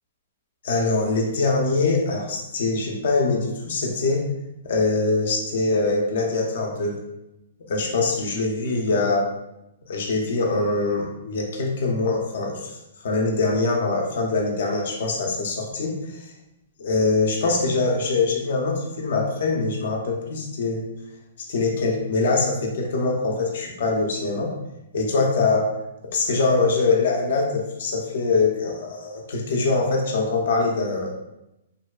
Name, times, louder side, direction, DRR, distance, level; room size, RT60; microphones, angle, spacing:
voice 1, 0.6-4.3 4.6-7.0 7.7-9.3 9.9-12.7 13.0-16.2 16.8-20.8 21.5-24.5 24.9-25.7 26.1-31.1, left 3 dB, 60° left, 1 dB, 0.5 m, -23 dB
2.6 x 2.1 x 2.3 m, 0.90 s
hypercardioid pair, 160°, 0 cm